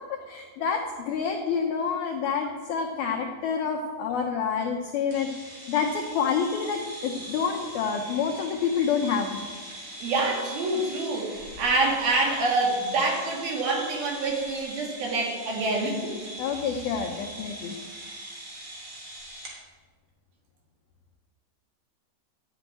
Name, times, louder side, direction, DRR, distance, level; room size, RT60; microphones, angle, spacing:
voice 1, 0.1-5.3 5.7-9.4 16.4-17.8, left 6 dB, 90° left, 3 dB, 2.1 m, -28 dB
sound 1, 5.1-19.6, right 1 dB, 30° right, 2.8 m, -41 dB
voice 2, 10.0-16.1, right 2 dB, 55° right, -1 dB, 3.8 m, -26 dB
13.0 x 8.1 x 9.1 m, 1.5 s
omnidirectional pair, 5.8 m